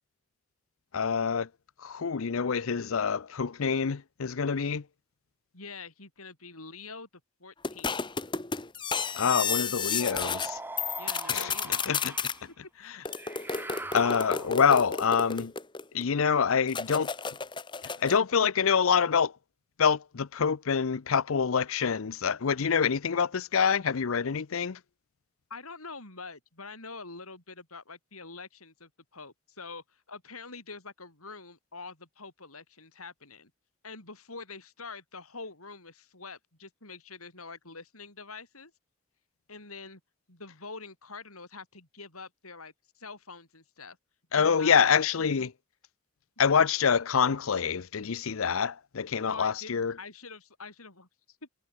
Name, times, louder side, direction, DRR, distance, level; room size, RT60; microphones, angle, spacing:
voice 1, 0.9-1.5 1.8-4.8 9.2-10.6 11.3-12.1 12.8-13.0 13.9-15.5 15.9-17.1 18.0-19.3 19.8-24.8 44.3-45.5 46.4-49.9, left 6 dB, 75° left, 0.6 m, -26 dB
voice 2, 5.5-7.1 7.4-8.0 11.0-11.8 12.6-12.7 25.5-33.5 33.8-38.7 39.5-40.0 40.3-44.0 44.3-45.5 49.2-51.4, left 4 dB, 90° left, 7.7 m, -45 dB
sound 1, 7.6-10.5 10.8-12.4 13.0-16.0 16.7-18.2, left 6 dB, 20° left, 1.0 m, -32 dB
sound 2, 10.0-12.5 13.1-14.8, right 2 dB, 10° right, 2.0 m, -41 dB
head